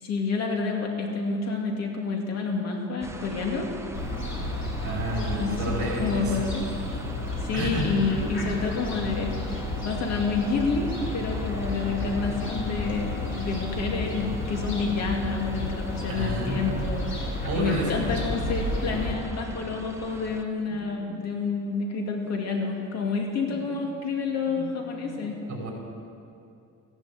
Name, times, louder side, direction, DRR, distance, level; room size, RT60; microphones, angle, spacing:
voice 1, 0.0-3.7 5.4-6.7 7.4-25.4, left 4 dB, 60° left, 1 dB, 2.5 m, -29 dB
sound 1, 3.0-20.4, right 2 dB, 10° right, 0.8 m, -42 dB
Fowl, 3.9-19.1, left 2 dB, 40° left, 3.6 m, -32 dB
voice 2, 4.8-6.4 7.5-7.9 16.1-16.8 17.4-18.3 19.5-19.6 20.7-21.2 23.5-23.8 24.4-24.7 25.0-25.7, right 2 dB, 45° right, -2 dB, 4.6 m, -32 dB
15.0 x 11.5 x 8.4 m, 2.6 s
cardioid pair, 145°, 30 cm